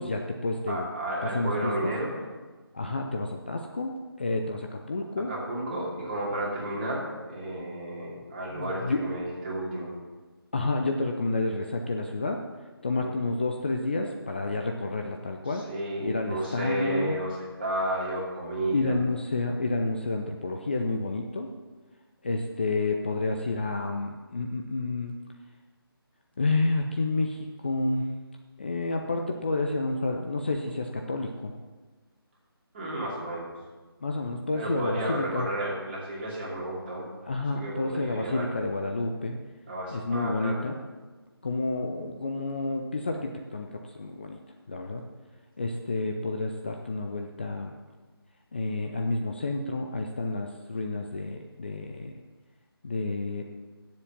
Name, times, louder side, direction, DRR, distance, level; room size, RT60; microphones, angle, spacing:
voice 1, 0.0-0.9 1.2-1.9 2.7-5.3 8.5-9.0 10.5-12.4 12.8-15.7 16.0-17.2 18.7-21.5 22.2-25.1 26.4-28.2 28.6-31.5 34.0-35.5 37.3-39.4 39.9-40.8 41.4-44.4 44.7-45.0 45.6-47.7 48.5-52.2 52.8-53.4, left 2 dB, 25° left, 3 dB, 0.5 m, -30 dB
voice 2, 0.7-2.1 5.3-9.9 12.9-13.1 15.5-18.9 32.7-33.5 34.5-37.1 37.5-38.5 39.7-40.6, right 1 dB, 25° right, -5 dB, 2.7 m, -32 dB
9.7 x 7.4 x 7.2 m, 1.3 s
figure-of-eight pair, 155°, 13 cm